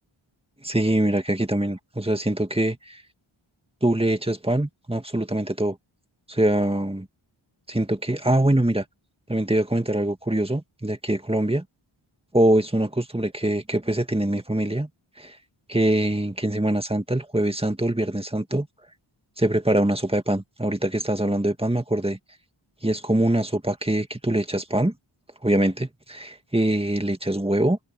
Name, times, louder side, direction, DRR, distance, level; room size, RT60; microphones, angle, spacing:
voice 1, 0.6-3.0 3.8-5.8 6.3-7.1 7.7-8.8 9.3-11.6 12.3-14.9 15.2-15.4 15.7-18.7 19.4-22.2 22.8-24.9 25.4-27.8, right 1 dB, 10° right, 2.1 m, -23 dB
cardioid pair, 45°, 50 cm